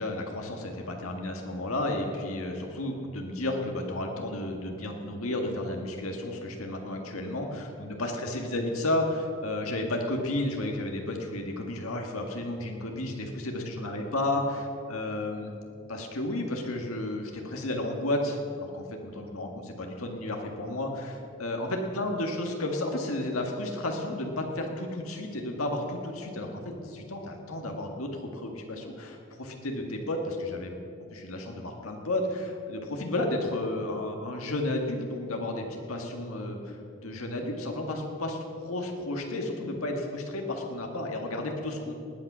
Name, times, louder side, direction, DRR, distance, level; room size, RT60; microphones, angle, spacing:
voice 1, 0.0-15.5 15.9-30.7 31.1-41.9, left 1 dB, 85° left, 2 dB, 1.8 m, -32 dB
19.5 x 8.9 x 6.2 m, 2.5 s
head